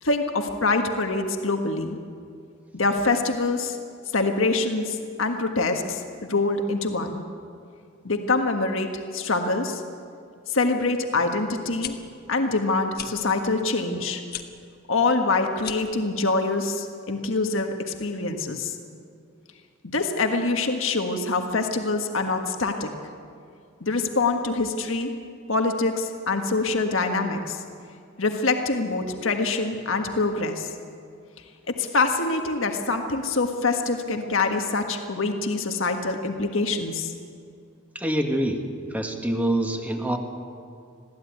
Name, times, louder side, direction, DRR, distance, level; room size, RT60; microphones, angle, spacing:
voice 1, 0.0-2.0 2.7-3.8 4.1-7.2 8.0-9.8 10.5-11.9 12.3-14.2 14.9-18.7 19.8-22.9 23.8-25.1 25.5-27.6 28.2-30.7 31.7-37.1, left 3 dB, 70° left, 4 dB, 1.6 m, -25 dB
sound 1, 11.8-11.9 12.9-13.1 14.3-14.5 15.5-15.9, left 9 dB, 50° left, 1.4 m, -35 dB
voice 2, 37.9-38.6 38.9-40.2, right 1 dB, 10° right, 3 dB, 1.7 m, -25 dB
22.0 x 15.5 x 9.4 m, 2.3 s
head